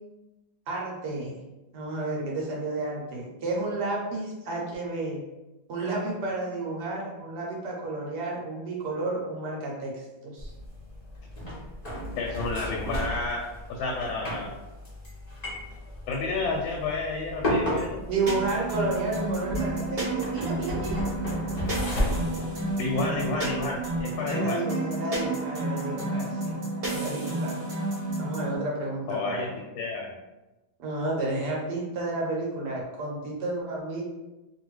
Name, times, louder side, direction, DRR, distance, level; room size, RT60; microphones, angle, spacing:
voice 1, 0.7-1.3 1.7-5.2 5.7-10.5 18.1-21.0 24.3-26.6 26.9-27.6 28.2-29.5 30.8-34.0, right 2 dB, 65° right, -3 dB, 1.2 m, -31 dB
sound 1, 10.4-24.0, left 1 dB, 60° left, 0.4 m, -34 dB
voice 2, 12.1-14.5 16.1-18.1 22.8-24.6 29.1-29.5 29.7-30.1, left 3 dB, 90° left, -1 dB, 1.4 m, -30 dB
sound 2, 18.3-28.6, right 2 dB, 45° right, 1.0 m, -31 dB
2.9 x 2.6 x 3.0 m, 1.0 s
omnidirectional pair, 2.1 m